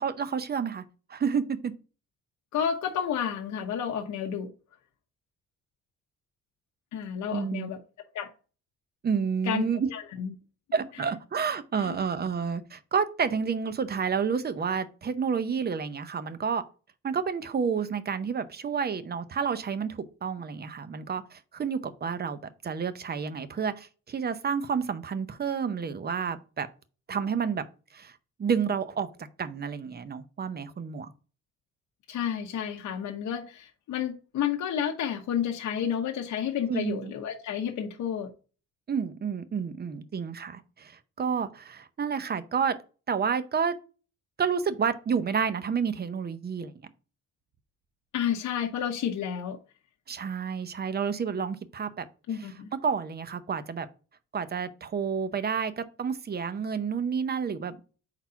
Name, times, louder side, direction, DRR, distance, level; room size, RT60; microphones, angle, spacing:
voice 1, 0.0-1.7 7.3-7.8 9.0-9.9 10.7-16.6 17.0-22.4 22.6-26.7 27.1-27.6 27.9-31.1 36.7-37.1 38.9-42.8 43.1-43.7 44.4-46.7 50.1-52.1 52.8-53.9 54.3-57.9, right 6 dB, 35° right, 0.7 m, -30 dB
voice 2, 2.5-4.5 6.9-7.8 8.1-8.3 9.5-10.3 11.8-12.0 32.1-38.3 48.1-49.6 52.3-52.7, left 8 dB, 70° left, 0.9 m, -31 dB
4.5 x 3.9 x 5.6 m
cardioid pair, 90°, 30 cm